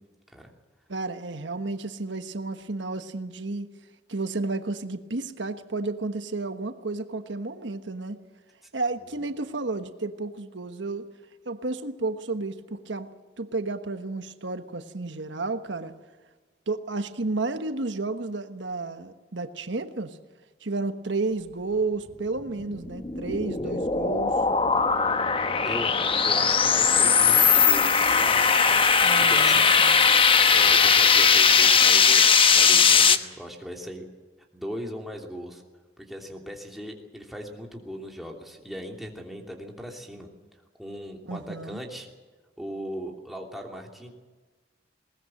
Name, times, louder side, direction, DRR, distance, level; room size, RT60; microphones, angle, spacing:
voice 1, 0.9-3.7 4.1-8.2 8.7-11.1 11.4-13.1 13.4-15.9 16.7-20.2 20.6-24.3 29.0-30.0 41.3-41.8, right 3 dB, 85° right, 9 dB, 1.3 m, -32 dB
sound 1, 22.6-33.2, left 6 dB, 30° left, 1.0 m, -19 dB
voice 2, 25.6-27.9 28.2-28.4 29.3-29.7 30.5-32.2 32.5-34.1 34.5-35.6 36.0-40.3 40.7-42.1 42.6-44.1, equal, ahead, 0 dB, 2.9 m, -38 dB
21.0 x 19.5 x 7.7 m, 1.3 s
head